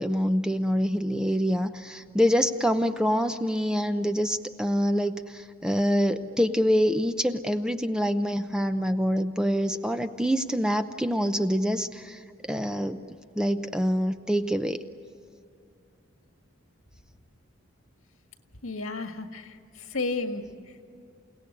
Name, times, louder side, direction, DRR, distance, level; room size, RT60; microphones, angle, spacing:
voice 1, 0.0-13.1 13.4-14.8, equal, 5° right, 9 dB, 0.6 m, -26 dB
voice 2, 18.6-20.8, left 3 dB, 85° left, 6 dB, 1.8 m, -33 dB
29.0 x 17.5 x 9.9 m, 2.5 s
head